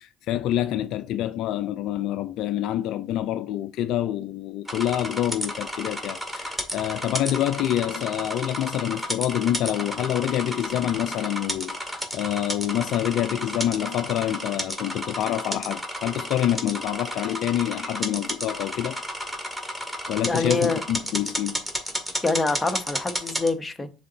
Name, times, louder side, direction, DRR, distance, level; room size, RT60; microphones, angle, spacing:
voice 1, 0.0-19.1 20.1-21.6, left 12 dB, 65° left, 0.4 m, -27 dB
sound 1, 4.7-23.5, equal, 5° right, 1.8 m, -32 dB
voice 2, 20.3-20.8 22.2-23.9, left 3 dB, 20° left, 1.0 m, -25 dB
6.8 x 3.9 x 3.9 m
hypercardioid pair, 65°, 0 cm